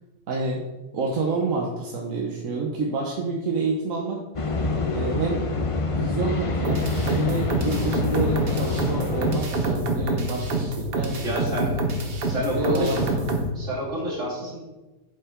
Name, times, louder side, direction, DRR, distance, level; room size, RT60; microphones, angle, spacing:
voice 1, 0.3-0.6 0.9-4.2 4.9-5.5 5.9-11.2 12.5-13.4, right 3 dB, 85° right, -1 dB, 1.4 m, -28 dB
sound 1, 4.3-9.4, left 3 dB, 35° left, 0.5 m, -26 dB
sound 2, 6.6-13.5, right 2 dB, 50° right, 1.1 m, -27 dB
voice 2, 11.2-11.7 12.3-13.0 13.5-14.6, equal, 70° right, -6 dB, 3.1 m, -28 dB
8.3 x 5.7 x 4.4 m, 1.1 s
omnidirectional pair, 1.3 m